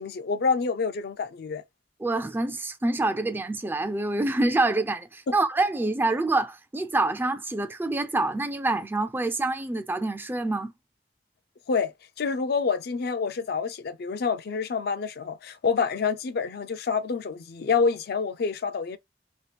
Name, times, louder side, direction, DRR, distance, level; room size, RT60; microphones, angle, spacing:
voice 1, 0.0-1.6 5.3-5.4 11.7-19.0, left 5 dB, 60° left, 0.4 m, -27 dB
voice 2, 2.0-10.7, right 2 dB, 10° right, 0.3 m, -26 dB
2.9 x 2.4 x 3.2 m
head